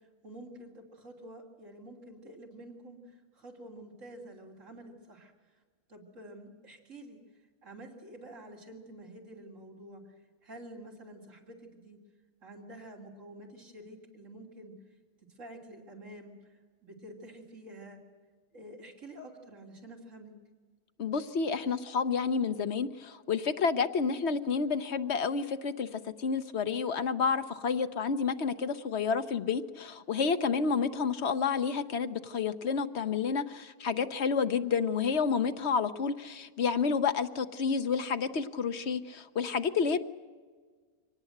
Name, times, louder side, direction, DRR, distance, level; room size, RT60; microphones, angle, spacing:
voice 1, 0.2-3.0 3.4-5.3 5.9-7.2 7.6-10.0 10.4-12.0 12.4-14.7 15.4-16.3 16.8-18.0 18.5-20.3, right 1 dB, 55° right, 0 dB, 3.4 m, -48 dB
voice 2, 21.0-40.1, left 5 dB, 55° left, 10 dB, 1.0 m, -30 dB
24.0 x 19.0 x 7.9 m, 1.5 s
omnidirectional pair, 1.5 m